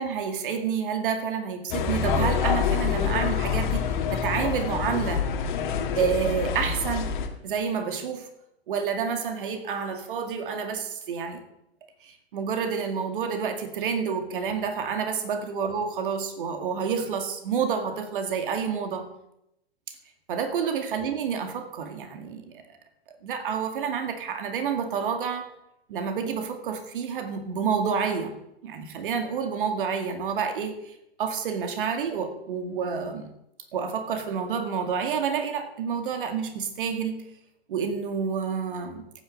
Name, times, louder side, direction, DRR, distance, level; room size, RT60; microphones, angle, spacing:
voice 1, 0.0-5.2 5.9-7.1 7.4-8.3 8.7-11.4 12.0-19.1 20.3-22.6 23.2-25.5 25.9-28.3 28.6-30.9 31.2-33.3 33.7-37.2 37.7-39.0, right 6 dB, 55° right, 6 dB, 2.3 m, -29 dB
sound 1, 1.7-7.3, left 6 dB, 50° left, 1.8 m, -26 dB
14.5 x 9.5 x 5.4 m, 0.84 s
figure-of-eight pair, 100°, 32 cm